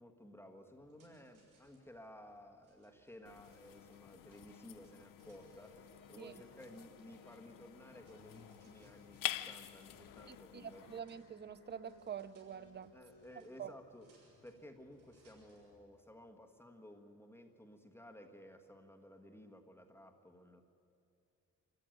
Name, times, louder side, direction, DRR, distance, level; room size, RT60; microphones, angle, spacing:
voice 1, 0.0-10.8 12.9-14.1 14.4-20.6, left 1 dB, 5° left, 1.5 m, -56 dB
sound 1, 0.8-15.8, right 3 dB, 75° right, 6.8 m, -73 dB
sound 2, 3.3-11.0, left 12 dB, 85° left, 0.7 m, -48 dB
sound 3, 5.2-16.2, left 2 dB, 45° left, 4.8 m, -66 dB
voice 2, 10.3-12.9 13.6-13.7, right 8 dB, 35° right, 0.6 m, -46 dB
26.5 x 14.0 x 9.2 m
cardioid pair, 120°, 32 cm